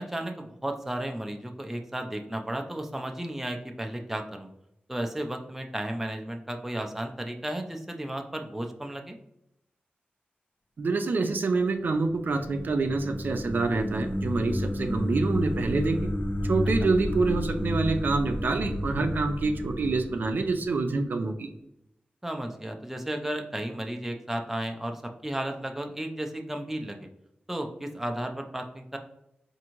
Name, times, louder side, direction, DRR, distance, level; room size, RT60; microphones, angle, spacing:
voice 1, 0.0-4.5 4.9-9.2 22.2-27.1 27.5-29.0, right 1 dB, 10° right, 4 dB, 0.4 m, -34 dB
voice 2, 10.8-16.1 16.4-21.5, right 3 dB, 65° right, 6 dB, 0.4 m, -27 dB
sound 1, 11.8-21.0, left 1 dB, 40° left, 0.8 m, -31 dB
4.7 x 2.6 x 2.9 m, 0.80 s
wide cardioid pair, 125°, 3 cm